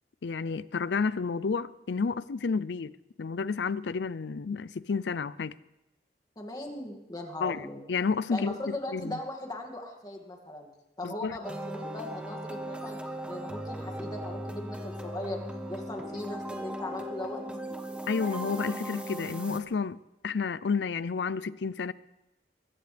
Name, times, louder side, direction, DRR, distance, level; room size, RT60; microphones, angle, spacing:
voice 1, 0.2-2.9 3.2-5.5 7.4-8.6 8.9-9.2 11.0-11.4 18.1-20.0 20.2-21.9, left 5 dB, 80° left, 0.5 m, -30 dB
voice 2, 6.4-7.8 8.3-10.7 11.0-13.0 13.3-15.4 15.7-17.4, left 1 dB, 25° left, 2.3 m, -38 dB
sound 1, 11.4-19.6, right 1 dB, 5° right, 1.1 m, -38 dB
22.0 x 16.0 x 3.4 m
head